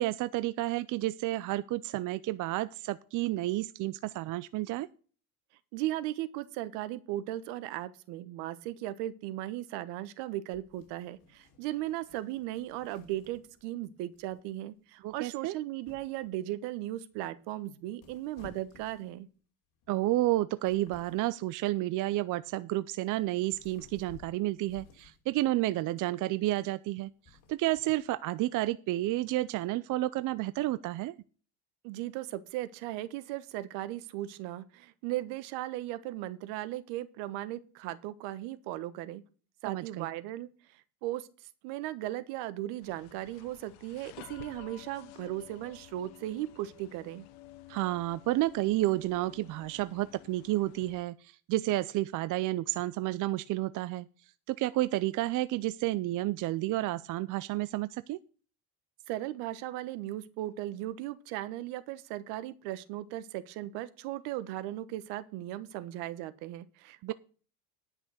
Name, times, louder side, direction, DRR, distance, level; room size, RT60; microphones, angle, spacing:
voice 1, 0.0-4.9 15.0-15.5 19.9-27.1 27.5-31.2 39.7-40.1 47.7-54.1 54.5-58.2 67.0-67.1, right 16 dB, 45° right, 15 dB, 0.6 m, -31 dB
voice 2, 5.7-19.3 31.8-39.2 39.6-41.3 41.6-47.2 59.1-67.1, right 14 dB, 70° right, 15 dB, 1.2 m, -37 dB
sound 1, 10.5-13.8 14.1-14.6 15.0-15.3 15.8-16.3 17.1-17.5 17.9-19.4 19.8-20.0 20.4-21.4 22.2-22.4 22.9-25.5 26.1-26.4 27.0-28.2, left 6 dB, 50° left, 3.4 m, -57 dB
sound 2, 42.8-51.0, left 15 dB, 70° left, 1.4 m, -53 dB
10.5 x 6.1 x 6.4 m, 0.38 s
supercardioid pair, 120°, 42 cm